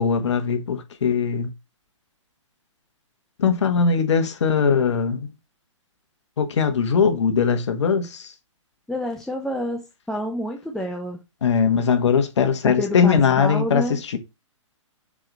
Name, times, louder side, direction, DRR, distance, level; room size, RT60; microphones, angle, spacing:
voice 1, 0.0-1.5 3.4-5.2 6.4-8.3 11.4-14.2, left 6 dB, 60° left, 1.5 m, -20 dB
voice 2, 8.9-11.2 12.6-14.0, left 1 dB, 5° left, 0.8 m, -28 dB
6.4 x 4.9 x 4.1 m
figure-of-eight pair, 125°, 16 cm